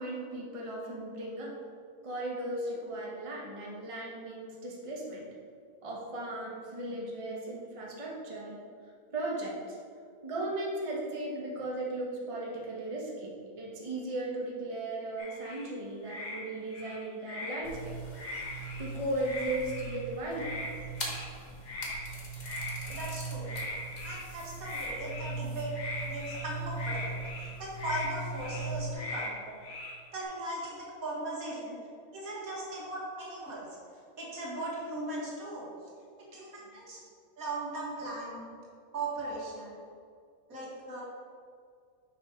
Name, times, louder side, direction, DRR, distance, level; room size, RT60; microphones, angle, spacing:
voice 1, 0.0-1.5 2.0-5.3 5.8-8.6 9.1-9.8 10.2-17.9 18.3-20.6 32.5-32.7 37.9-38.0, right 1 dB, 25° right, -4 dB, 1.1 m, -37 dB
sound 1, 15.2-15.7 16.0-16.4 16.7-17.6 18.1-18.9 19.2-20.0 20.4-20.7 20.9-21.3 21.6-22.0 22.4-23.1 23.4-24.3 24.6-25.3 25.7-26.5 26.7-27.5 27.8-28.1 28.4-28.7 28.9-29.3 29.6-30.2, left 2 dB, 65° left, 2.0 m, -40 dB
sound 2, 17.6-28.9, right 3 dB, 30° left, 1.1 m, -40 dB
voice 2, 22.9-23.6 24.0-25.7 26.1-29.4 30.1-31.8 32.1-33.7 34.2-35.7 36.3-37.0 37.4-38.6 38.9-39.7 40.5-41.0, right 1 dB, 65° right, -5 dB, 2.2 m, -38 dB
6.2 x 5.5 x 5.0 m, 2.2 s
omnidirectional pair, 1.6 m